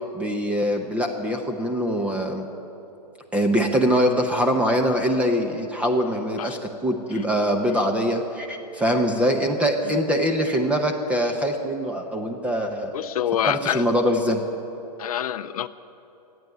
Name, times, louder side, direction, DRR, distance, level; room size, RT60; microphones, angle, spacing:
voice 1, 0.1-2.5 3.3-12.9 13.4-14.4, equal, 5° right, 3 dB, 0.8 m, -23 dB
voice 2, 12.9-13.8 15.0-15.7, left 10 dB, 60° left, 13 dB, 0.6 m, -26 dB
15.5 x 9.4 x 9.2 m, 2.9 s
hypercardioid pair, 145°, 21 cm